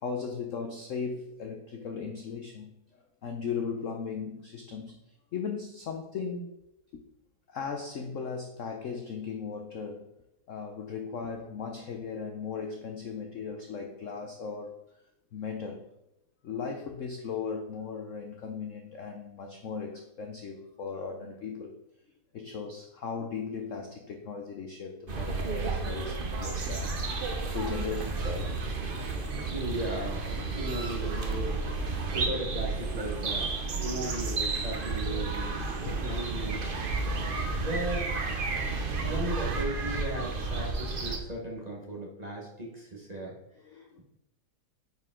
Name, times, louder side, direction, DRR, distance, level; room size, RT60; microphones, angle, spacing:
voice 1, 0.0-2.7 3.2-4.9 5.3-6.5 6.9-7.0 7.5-10.1 10.5-14.7 15.3-15.8 16.4-21.7 22.3-28.5 35.6-36.0 43.6-44.0, left 5 dB, 75° left, 4 dB, 0.7 m, -37 dB
sound 1, 25.1-41.2, right 3 dB, 60° right, 0.5 m, -32 dB
voice 2, 29.5-31.5 32.1-33.5 33.8-36.9 37.6-38.1 39.0-43.4 43.7-44.0, right 1 dB, 25° right, -2 dB, 1.1 m, -36 dB
9.3 x 4.7 x 3.7 m, 0.87 s
omnidirectional pair, 2.2 m